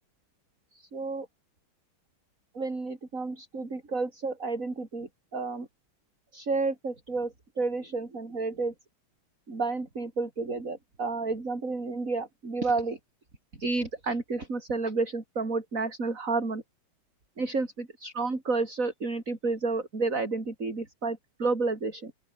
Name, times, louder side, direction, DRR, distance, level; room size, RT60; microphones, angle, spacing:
voice 1, 0.7-1.3 2.5-5.7 6.3-8.7 9.5-13.0 13.6-16.6 17.4-17.7 18.0-22.1, right 3 dB, 40° right, 4.5 m, -31 dB
open air
omnidirectional pair, 2.3 m